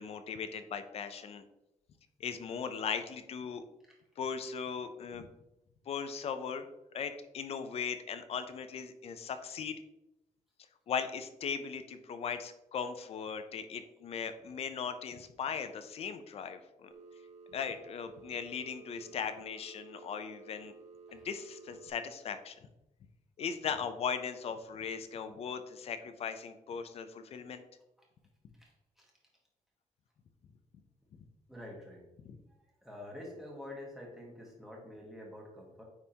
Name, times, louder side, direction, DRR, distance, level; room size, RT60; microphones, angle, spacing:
voice 1, 0.0-1.4 2.2-3.6 4.2-5.3 5.9-6.6 6.9-9.8 10.9-16.9 17.5-20.7 21.1-22.6 23.4-27.6 31.1-31.2 32.2-32.4, left 6 dB, 45° left, 9 dB, 0.5 m, -38 dB
Telephone, 16.9-21.9, right 4 dB, 55° right, 0.7 m, -53 dB
voice 2, 28.6-29.1 31.5-32.0 32.8-35.8, left 1 dB, 5° right, -2 dB, 1.5 m, -48 dB
9.4 x 3.5 x 2.9 m, 0.94 s
cardioid pair, 160°, 14 cm